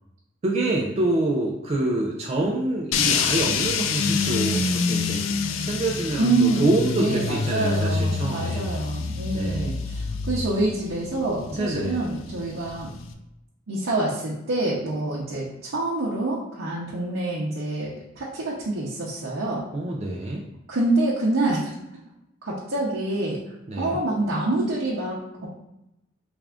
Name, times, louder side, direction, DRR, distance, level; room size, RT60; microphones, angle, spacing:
voice 1, 0.4-5.2 5.6-8.7 9.3-9.7 11.5-12.1 19.7-20.4 23.7-24.0, right 2 dB, 30° right, -2 dB, 0.3 m, -26 dB
sound 1, 2.9-13.1, left 5 dB, 80° left, 0.3 m, -27 dB
voice 2, 6.2-6.7 6.9-12.9 13.7-19.6 20.7-21.7 22.4-23.4 23.8-25.5, right 2 dB, 90° right, -5 dB, 0.7 m, -26 dB
3.5 x 2.4 x 3.4 m, 0.87 s
head